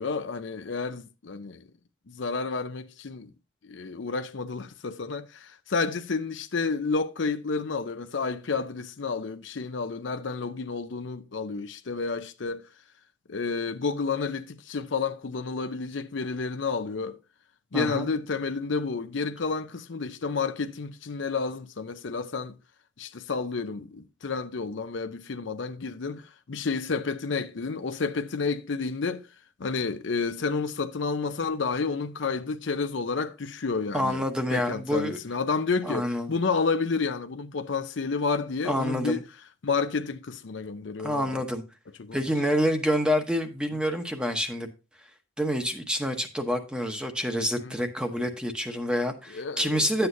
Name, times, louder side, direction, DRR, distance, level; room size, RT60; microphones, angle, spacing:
voice 1, 0.0-1.6 2.1-3.3 3.7-12.6 13.3-17.2 17.7-22.6 23.0-29.3 29.6-39.2 39.6-41.4 42.0-42.2 47.6-47.7 49.3-49.9, left 4 dB, 65° left, 0.6 m, -30 dB
voice 2, 17.7-18.1 33.9-35.2 35.8-36.3 38.6-39.2 41.0-41.6 42.1-44.7 45.4-50.1, equal, 5° right, 0.9 m, -27 dB
10.5 x 7.9 x 2.7 m
head